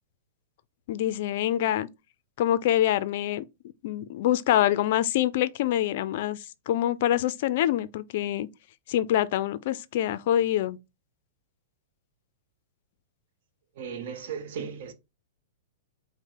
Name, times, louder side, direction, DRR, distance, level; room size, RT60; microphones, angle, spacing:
voice 1, 0.9-1.9 2.4-3.4 3.8-8.5 8.9-10.8, left 12 dB, 60° left, 0.3 m, -25 dB
voice 2, 13.8-14.9, right 7 dB, 60° right, 0.8 m, -36 dB
4.9 x 2.0 x 3.7 m
hypercardioid pair, 125°, 0 cm